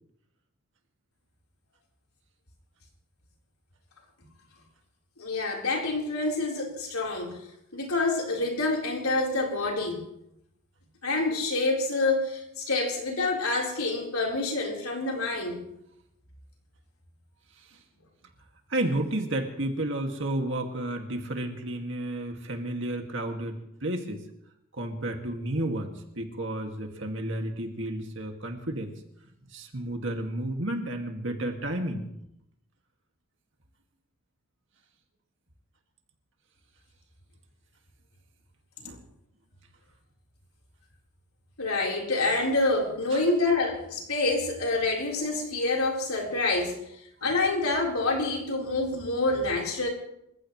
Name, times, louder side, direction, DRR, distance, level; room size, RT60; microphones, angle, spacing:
voice 1, 5.2-7.4 7.7-10.0 11.0-15.6 41.6-46.8 47.2-49.9, left 2 dB, 80° left, -1 dB, 4.3 m, -27 dB
voice 2, 18.7-24.2 24.8-28.9 29.5-32.1 38.8-39.0 43.1-43.2 47.2-47.3, right 1 dB, 60° right, 3 dB, 2.2 m, -32 dB
28.5 x 15.5 x 3.2 m, 0.80 s
head